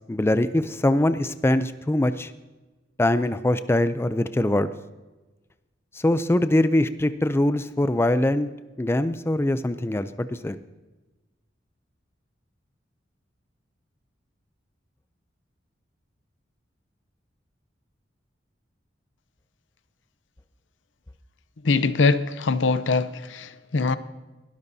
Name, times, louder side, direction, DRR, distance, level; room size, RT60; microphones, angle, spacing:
voice 1, 0.1-2.3 3.0-4.7 6.0-8.5 8.8-10.6, left 1 dB, 15° left, 12 dB, 0.4 m, -22 dB
voice 2, 21.6-24.0, left 3 dB, 75° left, 13 dB, 0.7 m, -22 dB
22.0 x 12.5 x 2.7 m, 1.2 s
head